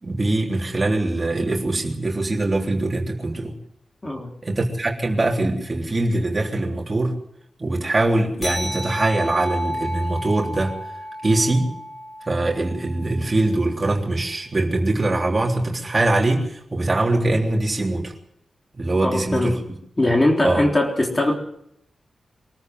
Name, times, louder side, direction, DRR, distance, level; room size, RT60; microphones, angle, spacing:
voice 1, 0.0-3.5 4.4-7.2 7.6-10.8 11.2-11.7 12.3-18.1 18.7-19.6 20.4-20.6, right 2 dB, 25° right, 0 dB, 3.6 m, -22 dB
voice 2, 4.0-4.3 19.0-19.6 20.0-21.3, left 1 dB, 20° left, 1 dB, 3.7 m, -20 dB
sound 1, 8.4-13.3, equal, 50° left, 6.6 m, -32 dB
24.0 x 14.0 x 7.9 m, 0.75 s
wide cardioid pair, 175°, 0 cm